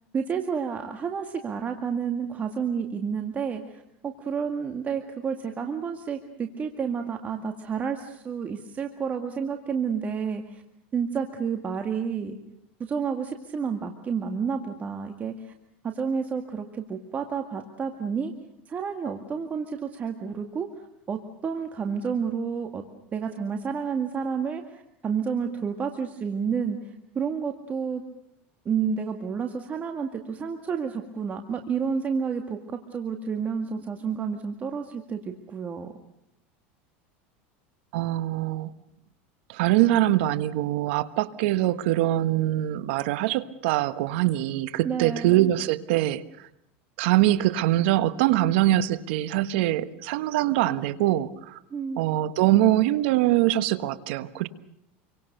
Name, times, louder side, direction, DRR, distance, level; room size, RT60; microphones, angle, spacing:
voice 1, 0.1-10.6 10.9-12.4 12.8-15.5 15.8-18.3 18.7-20.7 21.1-22.8 23.1-28.0 28.7-35.9 44.8-45.5 51.7-52.0, right 6 dB, 25° right, 5 dB, 2.0 m, -30 dB
voice 2, 37.9-38.7 39.5-46.5 47.0-51.6 52.0-54.5, right 14 dB, 75° right, 13 dB, 1.4 m, -23 dB
28.0 x 24.0 x 6.8 m, 0.78 s
supercardioid pair, 130°, 6 cm